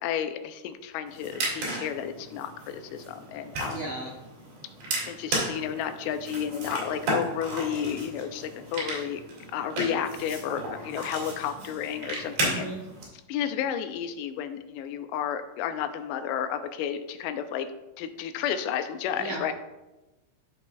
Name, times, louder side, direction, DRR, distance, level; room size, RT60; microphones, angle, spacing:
voice 1, 0.0-3.8 5.1-9.2 9.5-12.7 13.3-17.7 18.0-19.5, left 9 dB, 85° left, 9 dB, 2.8 m, -32 dB
sound 1, 1.1-13.0, right 1 dB, 55° right, 3.8 m, -34 dB
voice 2, 3.6-4.2 12.4-12.8 19.1-19.5, right 1 dB, 85° right, -3 dB, 1.5 m, -35 dB
13.0 x 5.5 x 2.3 m, 1.1 s
omnidirectional pair, 4.8 m